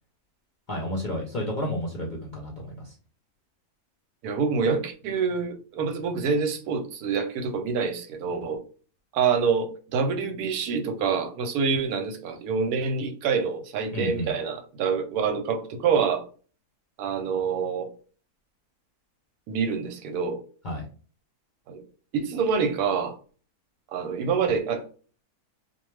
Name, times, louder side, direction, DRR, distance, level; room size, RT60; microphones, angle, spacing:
voice 1, 0.7-2.9 13.9-14.3 20.6-20.9, left 1 dB, 50° left, -2 dB, 0.6 m, -31 dB
voice 2, 4.2-8.6 9.1-16.3 17.0-17.9 19.5-20.4 21.7-21.8 22.1-23.2 23.9-24.8, right 5 dB, 85° right, 6 dB, 1.1 m, -26 dB
2.4 x 2.2 x 3.1 m, 0.39 s
omnidirectional pair, 1.6 m